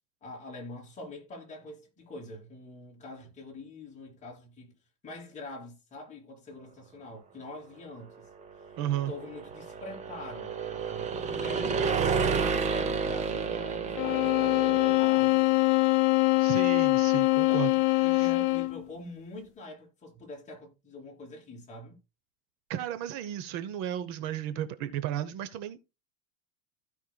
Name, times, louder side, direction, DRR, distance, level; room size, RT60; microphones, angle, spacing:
voice 1, 0.2-4.7 5.0-8.3 9.1-10.5 10.9-15.4 17.2-21.9, left 2 dB, 20° left, 3.1 m, -44 dB
sound 1, 8.5-15.4, right 5 dB, 20° right, 0.7 m, -31 dB
voice 2, 8.8-9.1 16.4-17.7 18.1-18.3 22.7-25.8, right 11 dB, 50° right, 0.8 m, -34 dB
sound 2, 14.0-18.8, left 20 dB, 50° left, 0.6 m, -24 dB
15.5 x 5.5 x 2.2 m
cardioid pair, 160°, 36 cm